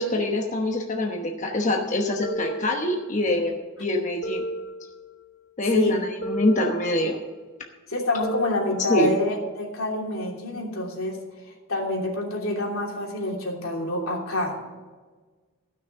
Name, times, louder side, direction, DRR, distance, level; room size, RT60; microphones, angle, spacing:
voice 1, 0.0-4.4 5.6-7.2 8.9-9.1, left 1 dB, 35° left, 1 dB, 1.1 m, -25 dB
sound 1, 2.2-3.4 4.2-5.4 6.2-7.4 8.2-9.4, right 1 dB, 65° left, 3.1 m, -35 dB
voice 2, 7.9-11.2 11.7-14.6, left 1 dB, 85° left, -1 dB, 3.1 m, -27 dB
15.5 x 6.4 x 6.7 m, 1.4 s
head